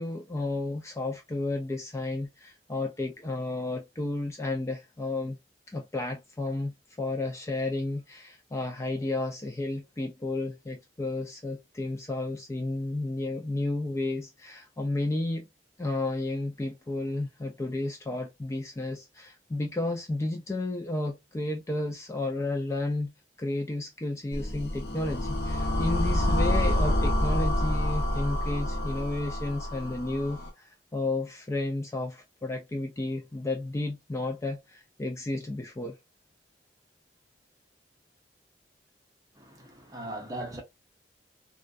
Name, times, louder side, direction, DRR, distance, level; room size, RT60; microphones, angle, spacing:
voice 1, 0.0-5.4 5.7-15.5 15.8-23.1 23.4-36.0, left 2 dB, 15° left, 0.3 m, -32 dB
sound 1, 24.3-30.5, left 1 dB, 65° left, 0.7 m, -27 dB
voice 2, 39.4-40.6, right 1 dB, 20° right, 0.7 m, -39 dB
2.4 x 2.2 x 2.3 m
head